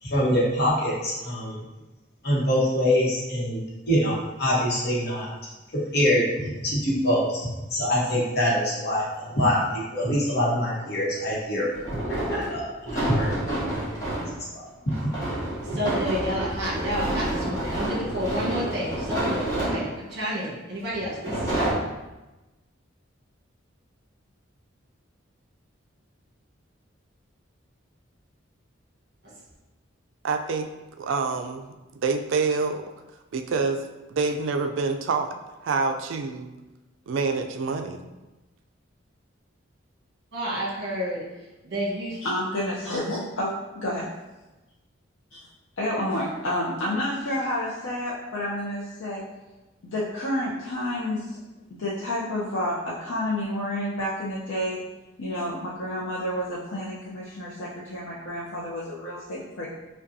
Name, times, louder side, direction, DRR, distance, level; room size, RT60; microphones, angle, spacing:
voice 1, 0.0-1.6 2.2-5.3 5.9-11.7 12.1-13.3 13.7-13.8 14.5-14.6 15.0-15.1, equal, 55° left, -5 dB, 1.0 m, -24 dB
sound 1, 9.0-9.1 11.7-14.4 14.9-20.1 20.9-21.7, right 1 dB, 15° left, 1.2 m, -29 dB
voice 2, 15.7-21.7 29.2-29.3 40.3-41.2 41.6-42.2, equal, 55° right, -5 dB, 1.2 m, -30 dB
voice 3, 30.2-30.7 31.0-31.7 32.0-32.9 33.3-35.3 35.6-36.5 37.1-38.0, right 4 dB, 75° right, 6 dB, 0.4 m, -26 dB
voice 4, 42.2-43.5 43.8-44.1 45.3-45.4 45.8-49.2 49.8-51.4 51.8-54.8 55.2-59.7, left 1 dB, 80° left, -7 dB, 0.6 m, -29 dB
5.1 x 2.3 x 2.6 m, 1.1 s
head